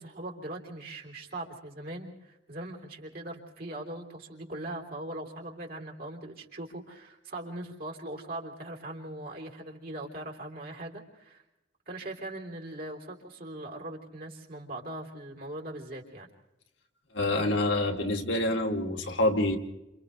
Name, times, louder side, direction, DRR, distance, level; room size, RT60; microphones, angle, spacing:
voice 1, 0.0-11.4 11.9-16.3, right 1 dB, 50° right, 1 dB, 3.7 m, -40 dB
voice 2, 17.1-19.6, left 1 dB, 80° left, 2 dB, 2.6 m, -27 dB
29.5 x 28.0 x 3.3 m, 0.93 s
head